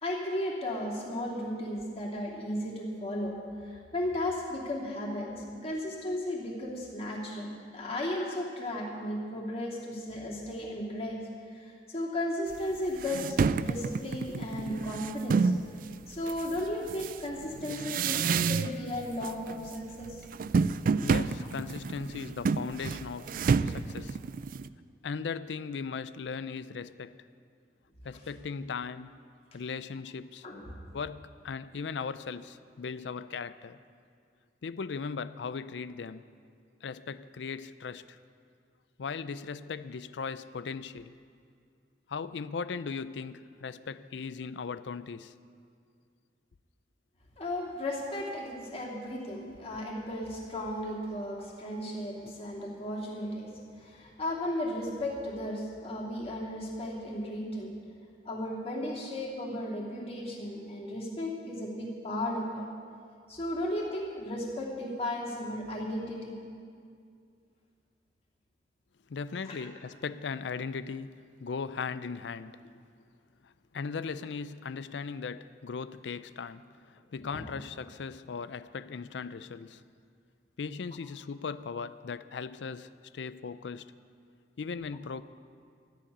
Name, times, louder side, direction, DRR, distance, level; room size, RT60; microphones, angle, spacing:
voice 1, 0.0-15.5 16.1-20.2 30.4-30.7 47.4-57.8 58.2-62.6 63.3-66.3 69.4-69.6 77.3-77.4, left 1 dB, 35° left, 2.6 m, -35 dB
sound 1, 12.5-12.6 13.0-15.7 16.3-18.9 19.2-19.7 20.0-24.7, right 5 dB, 50° right, 0.3 m, -29 dB
voice 2, 21.0-23.4 23.7-24.2 25.0-27.2 28.0-29.2 29.5-30.5 30.9-33.8 34.6-36.3 36.8-38.2 39.0-41.2 42.1-45.3 52.2-52.3 69.1-72.7 73.4-79.8 80.6-83.9 84.6-85.2, left 5 dB, 75° left, 0.5 m, -38 dB
13.5 x 7.4 x 9.8 m
head